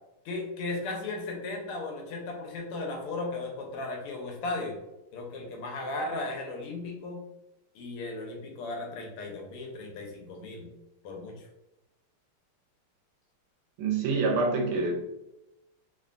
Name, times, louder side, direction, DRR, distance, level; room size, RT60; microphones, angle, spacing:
voice 1, 0.2-4.8 5.1-7.2 7.7-10.7 11.0-11.3, left 2 dB, 90° left, 1 dB, 1.6 m, -36 dB
voice 2, 13.8-15.1, right 3 dB, 80° right, 1 dB, 1.4 m, -26 dB
3.7 x 2.1 x 2.4 m, 0.93 s
omnidirectional pair, 2.4 m